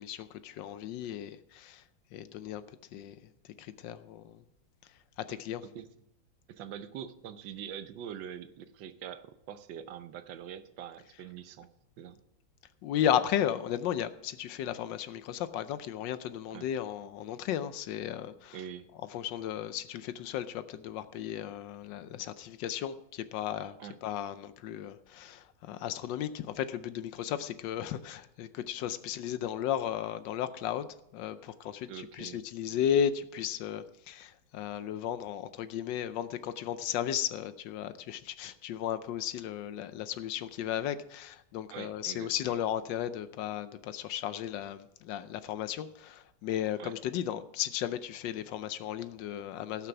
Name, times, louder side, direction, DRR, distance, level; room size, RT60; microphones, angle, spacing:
voice 1, 0.0-1.8 2.1-4.4 4.8-5.6 12.8-18.6 19.1-23.8 24.0-49.9, left 10 dB, 80° left, 13 dB, 1.3 m, -35 dB
voice 2, 5.3-5.9 6.5-11.7 12.0-12.2 16.5-16.7 18.5-18.9 23.8-23.9 31.9-32.4 41.7-42.7 46.8-46.9, right 9 dB, 85° right, 11 dB, 1.5 m, -44 dB
16.5 x 6.0 x 5.8 m, 0.79 s
omnidirectional pair, 2.0 m